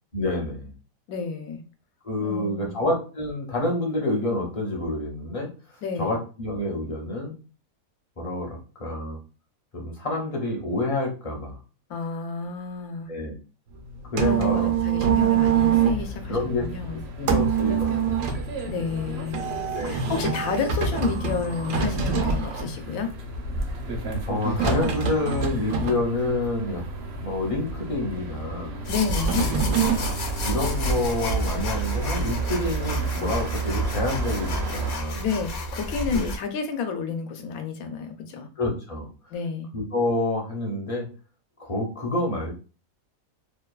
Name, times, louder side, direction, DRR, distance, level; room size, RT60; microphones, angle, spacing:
voice 1, 0.1-0.7 2.0-5.5 6.0-7.3 8.2-9.2 9.7-11.6 13.1-13.4 14.1-14.7 16.3-18.0 19.7-20.1 24.3-26.9 27.2-28.8 30.4-35.2 36.1-36.3 38.6-39.1 39.7-41.1 41.6-42.5, left 2 dB, 35° left, -1 dB, 0.6 m, -28 dB
voice 2, 1.1-1.6 2.2-2.8 5.8-6.1 11.9-13.1 14.2-17.0 18.6-23.1 28.9-29.5 35.2-38.5 39.3-39.7, left 5 dB, 85° left, 6 dB, 1.1 m, -30 dB
sound 1, 13.7-30.1, right 6 dB, 80° right, 1.0 m, -27 dB
sound 2, 15.7-34.9, right 3 dB, 60° right, 0.7 m, -35 dB
sound 3, 28.8-36.4, equal, 60° left, 0.9 m, -30 dB
2.8 x 2.2 x 2.3 m, 0.35 s
omnidirectional pair, 1.5 m